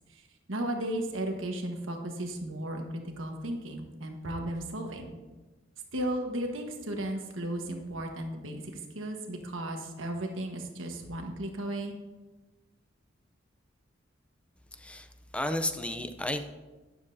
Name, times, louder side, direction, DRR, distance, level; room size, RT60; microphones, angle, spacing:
voice 1, 0.5-2.9 3.2-5.2 5.9-8.6 8.9-11.9, right 1 dB, 90° right, 3 dB, 1.3 m, -35 dB
voice 2, 14.7-16.5, left 1 dB, 5° left, 8 dB, 0.5 m, -33 dB
12.0 x 9.7 x 2.7 m, 1.2 s
head